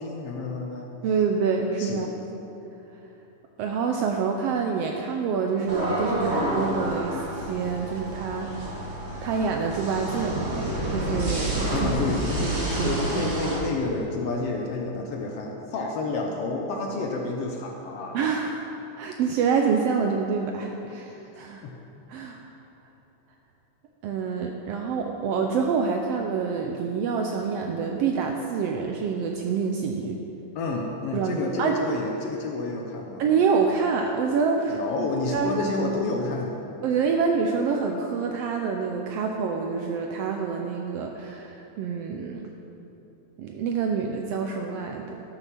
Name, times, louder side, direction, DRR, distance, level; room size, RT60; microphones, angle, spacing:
voice 1, 0.0-0.9 1.8-2.1 11.7-18.2 21.6-21.7 30.5-33.2 34.7-36.5, left 3 dB, 70° left, 1 dB, 1.5 m, -29 dB
voice 2, 1.0-2.1 3.6-8.5 9.2-11.9 12.4-13.3 18.1-18.7 19.0-21.6 22.1-22.4 24.0-30.2 31.1-31.8 33.2-34.8 35.3-35.6 36.8-42.5 43.4-45.2, right 5 dB, 75° right, 3 dB, 1.4 m, -27 dB
sound 1, 5.7-13.6, right 1 dB, 30° right, 1.6 m, -29 dB
12.5 x 6.6 x 5.8 m, 2.9 s
omnidirectional pair, 3.3 m